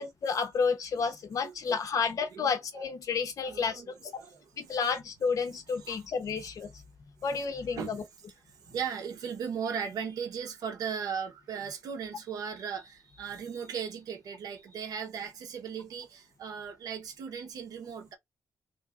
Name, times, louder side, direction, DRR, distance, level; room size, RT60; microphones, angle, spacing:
voice 1, 0.0-3.8 4.7-6.7 7.2-8.0, left 5 dB, 65° left, 0.8 m, -30 dB
voice 2, 1.4-1.7 2.3-2.9 3.4-4.8 5.8-6.0 7.3-8.0 8.7-18.2, right 7 dB, 80° right, 0.7 m, -38 dB
3.3 x 2.6 x 2.4 m
cardioid pair, 95°, 6 cm